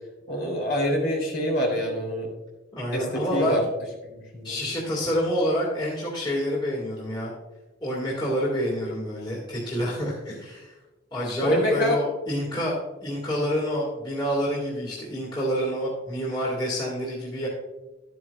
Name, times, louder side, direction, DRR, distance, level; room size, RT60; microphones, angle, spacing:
voice 1, 0.3-2.3 2.9-3.6 4.0-4.6 11.4-12.0, equal, 80° left, -1 dB, 3.4 m, -26 dB
voice 2, 2.7-3.6 4.4-7.3 7.8-10.7 11.1-12.7 13.0-17.5, equal, 25° left, -5 dB, 2.0 m, -27 dB
12.0 x 9.3 x 2.4 m, 1.1 s
head